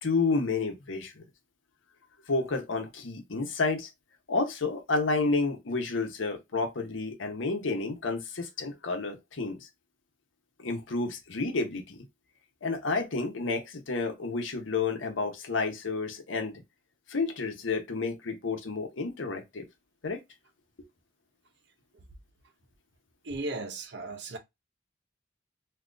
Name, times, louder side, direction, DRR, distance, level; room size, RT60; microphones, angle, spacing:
voice 1, 0.0-1.2 2.3-3.9 4.3-9.7 10.6-12.0 12.6-16.6 17.1-19.7 20.0-20.2, left 3 dB, 85° left, 0.9 m, -30 dB
voice 2, 23.2-24.4, right 2 dB, 60° right, 0.7 m, -36 dB
2.8 x 2.4 x 3.7 m
head